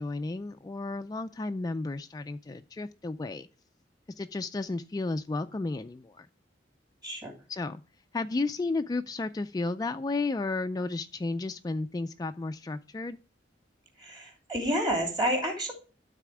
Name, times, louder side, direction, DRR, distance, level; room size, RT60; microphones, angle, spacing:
voice 1, 0.0-3.5 4.2-6.3 7.5-7.8 8.1-13.2, left 3 dB, 20° left, 8 dB, 0.3 m, -33 dB
voice 2, 7.0-7.3 14.0-15.7, equal, 25° right, 1 dB, 2.9 m, -29 dB
12.5 x 4.2 x 4.7 m, 0.37 s
head